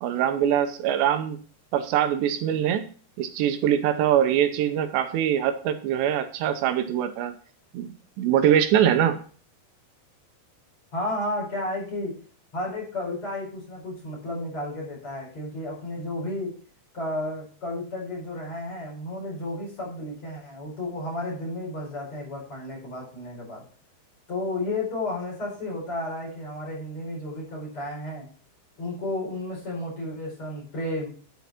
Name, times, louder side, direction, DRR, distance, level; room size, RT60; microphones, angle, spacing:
voice 1, 0.0-1.4 1.7-2.9 3.2-7.3 7.7-9.2, right 10 dB, 85° right, 8 dB, 3.0 m, -23 dB
voice 2, 10.9-12.2 12.5-16.5 16.9-23.6 24.3-28.3 28.8-31.1, left 1 dB, 30° left, -4 dB, 5.4 m, -32 dB
10.5 x 5.7 x 4.3 m, 0.43 s
omnidirectional pair, 4.9 m